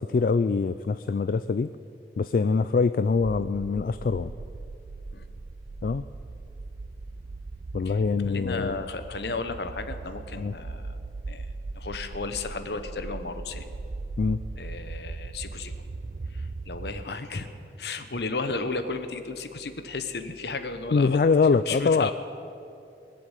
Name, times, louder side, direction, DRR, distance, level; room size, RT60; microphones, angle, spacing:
voice 1, 0.0-1.7 2.2-4.3 5.8-6.0 7.7-8.8 10.4-10.5 14.2-14.4 20.9-22.1, left 4 dB, 50° left, 12 dB, 0.3 m, -24 dB
sound 1, 3.2-17.1, right 3 dB, 45° right, 0.4 m, -39 dB
voice 2, 8.3-11.0 11.3-11.5 11.7-13.7 14.6-15.7 16.3-17.5 17.8-22.1, left 3 dB, 70° left, 9 dB, 1.1 m, -34 dB
21.5 x 7.7 x 8.3 m, 2.6 s
head